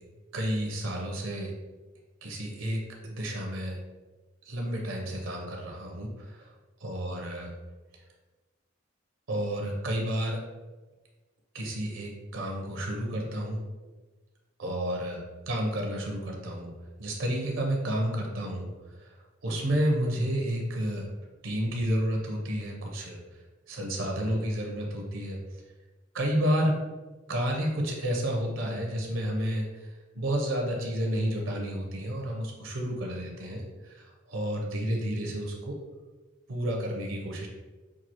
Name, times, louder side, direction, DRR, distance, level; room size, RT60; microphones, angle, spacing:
voice 1, 0.3-1.5 2.2-3.8 4.5-6.4 6.8-7.5 9.3-10.4 11.5-13.6 14.6-16.7 17.0-18.7 19.0-19.1 19.4-21.1 21.4-23.2 23.7-25.4 26.1-26.8 27.3-29.8 30.1-34.0 34.3-35.8 36.5-37.5, equal, 85° right, 0 dB, 0.8 m, -30 dB
5.8 x 2.4 x 3.0 m, 1.2 s
head